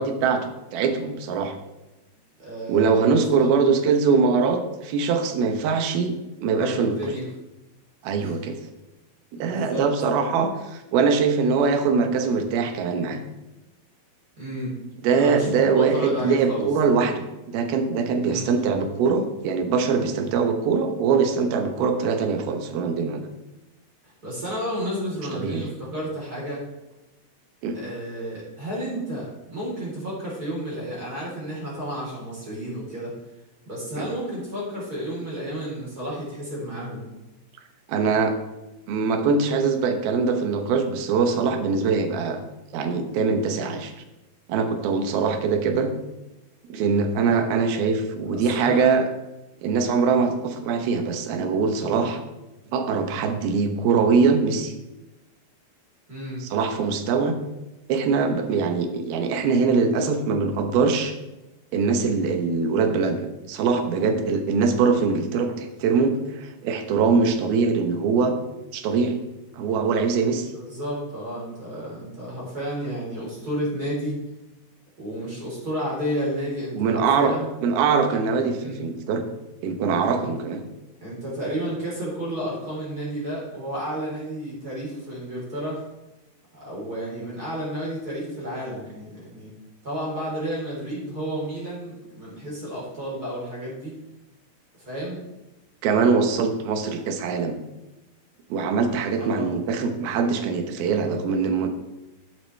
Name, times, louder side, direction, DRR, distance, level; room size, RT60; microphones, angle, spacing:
voice 1, 0.0-1.5 2.7-7.0 8.0-8.6 9.4-13.2 15.0-23.3 25.3-25.7 27.6-27.8 34.0-34.1 37.9-38.3 38.9-42.4 42.7-43.9 44.5-45.9 46.7-49.1 49.6-52.2 52.7-54.7 56.4-57.3 57.9-61.1 61.7-63.2 63.5-68.3 68.7-69.2 69.6-70.5 76.7-77.3 77.6-79.2 79.6-80.6 95.8-97.6 98.5-101.7, right 5 dB, 85° right, 6 dB, 2.9 m, -22 dB
voice 2, 2.4-3.5 6.5-7.2 8.2-8.3 9.3-9.9 14.4-14.8 15.1-16.7 18.2-18.5 24.0-26.6 27.7-33.1 33.7-37.1 47.2-47.4 48.5-48.8 51.8-52.0 56.1-56.4 70.5-74.2 75.0-77.5 78.5-78.8 80.0-80.3 81.0-85.8 86.5-89.5 89.8-93.9 94.8-95.2 99.2-99.5, equal, 25° right, -5 dB, 3.9 m, -32 dB
12.5 x 9.2 x 3.3 m, 1.0 s
omnidirectional pair, 4.3 m